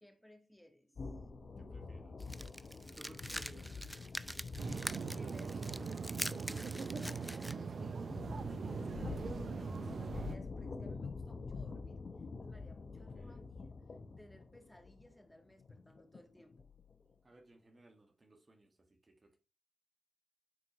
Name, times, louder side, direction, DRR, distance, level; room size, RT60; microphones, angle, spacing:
voice 1, 0.0-0.9 5.1-12.1 12.4-13.8 14.2-16.7 17.0-17.1, left 1 dB, 10° left, 1.7 m, -60 dB
sound 1, 1.0-17.1, left 4 dB, 55° left, 1.1 m, -47 dB
voice 2, 1.6-2.2 3.0-3.9 12.9-13.4 17.2-19.4, right 2 dB, 40° right, 1.7 m, -61 dB
sound 2, 2.2-7.5, right 1 dB, 10° right, 0.5 m, -44 dB
sound 3, 4.6-10.4, right 5 dB, 60° right, 0.6 m, -41 dB
9.3 x 4.5 x 3.2 m
supercardioid pair, 45°, 0 cm